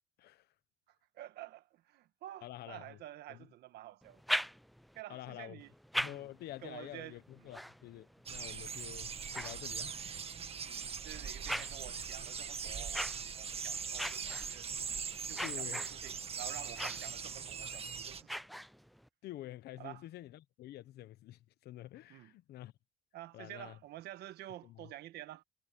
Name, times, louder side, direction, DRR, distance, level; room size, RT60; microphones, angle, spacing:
voice 1, 1.1-4.2 4.9-5.7 6.0-6.3 6.6-7.2 9.9-10.0 10.7-14.7 15.3-18.4 19.8-20.0 22.1-22.3 23.1-25.4, right 14 dB, 75° right, 1.5 m, -50 dB
voice 2, 2.4-3.0 3.3-3.5 5.1-5.6 6.0-10.0 11.4-11.7 15.4-15.9 19.2-22.7 23.3-23.8 24.6-24.9, left 14 dB, 70° left, 1.1 m, -48 dB
sound 1, 4.0-5.0 5.6-10.2 10.8-19.1, equal, ahead, 0.5 m, -43 dB
sound 2, 8.3-18.2, right 6 dB, 35° right, 1.8 m, -41 dB
cardioid pair, 110°, 17 cm